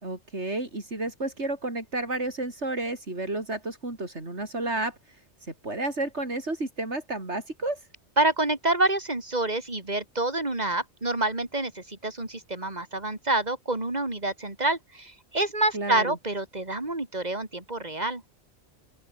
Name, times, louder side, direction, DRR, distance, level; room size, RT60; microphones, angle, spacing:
voice 1, 0.0-5.2 5.4-7.8 15.7-16.2, right 2 dB, 85° right, 5.2 m, -31 dB
voice 2, 8.2-18.2, right 2 dB, 40° right, 3.6 m, -27 dB
open air
omnidirectional pair, 1.1 m